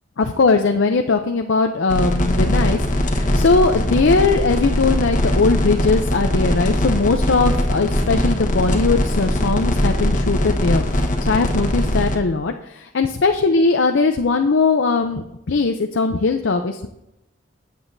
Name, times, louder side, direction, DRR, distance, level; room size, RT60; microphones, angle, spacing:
voice 1, 0.2-16.9, left 3 dB, 85° left, 5 dB, 0.6 m, -19 dB
sound 1, 1.9-12.2, left 1 dB, 45° left, 1.2 m, -20 dB
13.0 x 8.4 x 2.7 m, 0.86 s
head